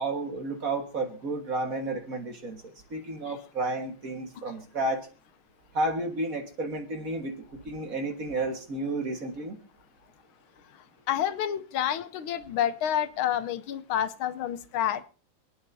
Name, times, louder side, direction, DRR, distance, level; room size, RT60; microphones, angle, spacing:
voice 1, 0.0-2.6 2.9-5.1 5.7-7.4 7.7-9.6, right 2 dB, 45° right, 3 dB, 1.9 m, -31 dB
voice 2, 11.1-15.0, left 10 dB, 80° left, 12 dB, 1.6 m, -29 dB
27.5 x 9.3 x 2.7 m, 0.37 s
omnidirectional pair, 2.2 m